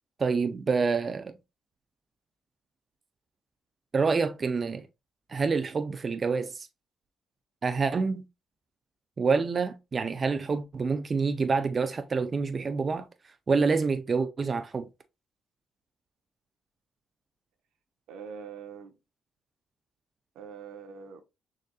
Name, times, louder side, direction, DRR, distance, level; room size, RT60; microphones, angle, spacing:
voice 1, 0.2-1.3 3.9-4.9 5.3-6.7 7.6-8.2 9.2-13.1 13.5-14.9, right 4 dB, 35° right, 0.5 m, -27 dB
voice 2, 18.1-19.0 20.3-21.2, right 6 dB, 85° right, 0.9 m, -43 dB
6.4 x 2.6 x 2.3 m
cardioid pair, 90°, 0 cm